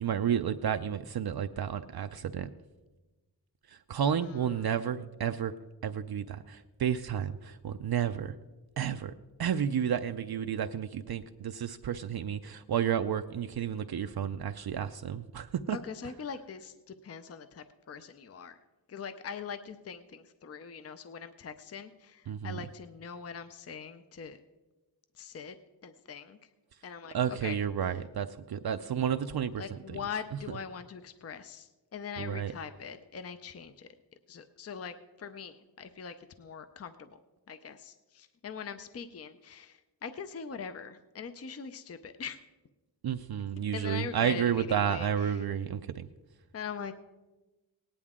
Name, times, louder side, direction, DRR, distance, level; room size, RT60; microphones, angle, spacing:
voice 1, 0.0-2.5 3.9-5.5 5.8-8.3 8.8-9.1 9.4-15.8 22.3-22.6 27.1-29.6 29.9-30.0 32.2-32.5 43.0-46.1, right 8 dB, 60° right, 8 dB, 0.5 m, -31 dB
voice 2, 4.2-4.7 15.7-18.6 18.9-24.4 25.2-25.6 25.8-26.5 26.8-27.6 29.6-33.9 34.3-37.2 37.5-42.4 43.7-45.5 46.5-46.9, left 6 dB, 35° left, 10 dB, 0.5 m, -42 dB
18.0 x 10.0 x 3.6 m, 1.2 s
wide cardioid pair, 110°, 43 cm